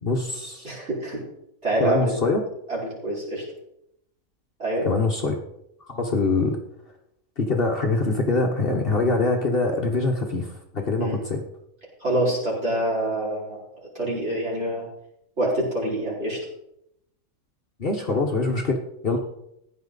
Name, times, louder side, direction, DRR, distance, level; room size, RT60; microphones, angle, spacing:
voice 1, 0.0-0.7 1.8-2.4 4.8-5.4 5.9-6.6 7.4-11.4 17.8-19.2, left 3 dB, 45° left, 2 dB, 1.3 m, -24 dB
voice 2, 0.6-1.2 1.6-2.2 2.7-3.4 4.6-4.9 11.0-11.2 12.0-14.8 15.4-16.4, right 1 dB, 50° right, -6 dB, 5.2 m, -26 dB
15.5 x 9.9 x 4.0 m, 0.80 s
omnidirectional pair, 1.5 m